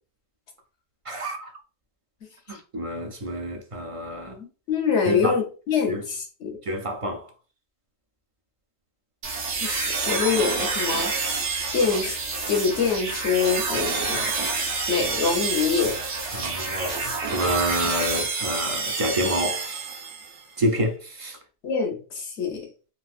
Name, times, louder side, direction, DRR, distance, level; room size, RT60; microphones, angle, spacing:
voice 1, 1.1-1.5 2.5-4.3 5.1-5.4 5.9-6.0 6.7-7.2 16.3-19.8 20.6-21.4, equal, 55° right, 0.3 m, -28 dB
voice 2, 4.3-6.6 9.6-11.1 11.7-14.5 14.9-16.5 21.6-22.7, left 6 dB, 85° left, 1.1 m, -25 dB
sound 1, 9.2-20.4, right 4 dB, 85° right, 1.1 m, -28 dB
3.8 x 2.4 x 2.4 m
omnidirectional pair, 1.1 m